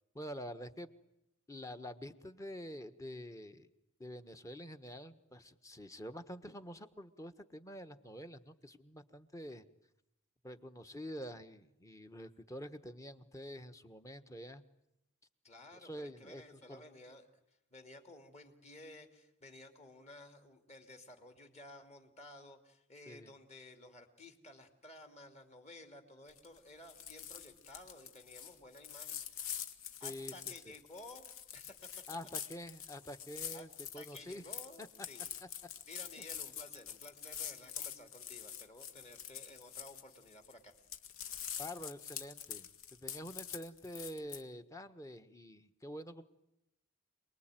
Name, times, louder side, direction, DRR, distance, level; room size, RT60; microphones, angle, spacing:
voice 1, 0.1-0.9 1.5-3.7 4.0-9.6 10.4-14.6 15.8-16.8 23.1-23.3 30.0-30.5 32.1-34.4 34.8-34.9 41.6-46.2, equal, 15° left, 9 dB, 1.3 m, -47 dB
voice 2, 15.4-17.3 17.7-29.2 30.0-31.9 33.5-33.7 33.9-35.2 35.9-40.7, left 2 dB, 30° left, 5 dB, 2.7 m, -54 dB
sound 1, 26.3-26.6 26.8-40.5 40.8-44.4, left 9 dB, 65° left, 2.0 m, -46 dB
28.0 x 20.5 x 9.1 m, 0.87 s
head